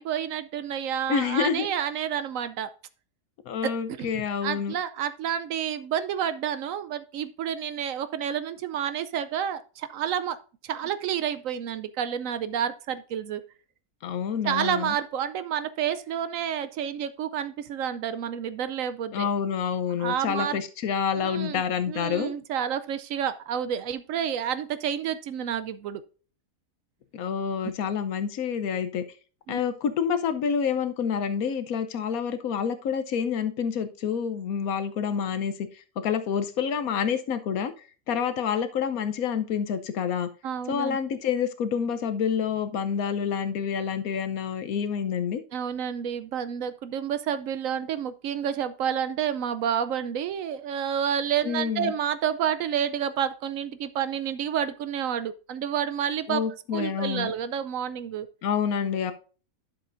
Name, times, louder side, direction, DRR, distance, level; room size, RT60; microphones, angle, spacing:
voice 1, 0.0-2.7 3.6-3.7 4.0-10.4 10.6-13.4 14.4-19.3 20.0-20.6 21.2-26.0 29.5-29.6 40.4-41.0 45.5-56.4 56.7-58.3, right 9 dB, 70° right, 0.9 m, -29 dB
voice 2, 1.1-1.7 3.5-4.8 14.0-14.9 19.1-22.3 27.1-29.0 29.5-37.7 38.1-40.3 40.7-45.4 51.4-51.9 56.3-57.3 58.4-59.1, left 7 dB, 80° left, 1.2 m, -28 dB
11.5 x 6.8 x 2.5 m
omnidirectional pair, 1.5 m